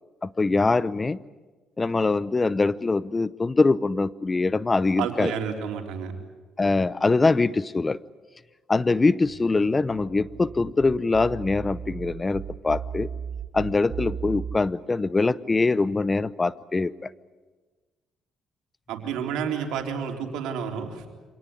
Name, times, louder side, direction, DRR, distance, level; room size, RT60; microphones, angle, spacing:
voice 1, 0.2-1.2 1.8-5.3 6.6-8.0 8.7-13.1 13.5-17.1, left 3 dB, 25° left, 18 dB, 0.7 m, -23 dB
voice 2, 5.0-6.1 18.9-21.1, right 7 dB, 85° right, 3 dB, 3.7 m, -30 dB
sound 1, 9.2-14.6, right 7 dB, 55° right, 1.8 m, -36 dB
25.5 x 18.5 x 9.8 m, 1.3 s
cardioid pair, 85°, 0 cm